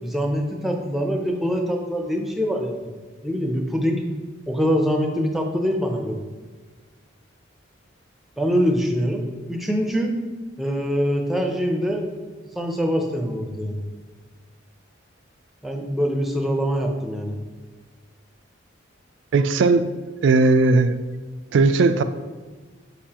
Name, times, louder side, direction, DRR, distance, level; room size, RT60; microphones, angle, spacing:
voice 1, 0.0-2.9 3.2-4.0 4.5-6.2 8.4-10.2 10.6-12.1 12.5-13.9 15.6-17.3, equal, ahead, 2 dB, 0.6 m, -24 dB
voice 2, 19.3-19.8 20.2-20.9 21.5-22.0, right 3 dB, 70° right, 10 dB, 0.3 m, -17 dB
6.6 x 5.4 x 2.9 m, 1.3 s
head